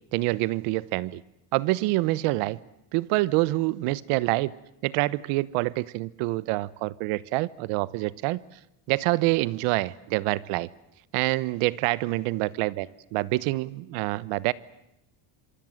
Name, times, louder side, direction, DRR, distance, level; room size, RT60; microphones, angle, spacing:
voice 1, 0.1-1.2 1.5-2.6 2.9-4.5 4.8-8.4 8.9-10.7 11.1-14.5, right 20 dB, 85° right, 1.2 m, -26 dB
26.5 x 24.0 x 7.9 m
cardioid pair, 165°, 49 cm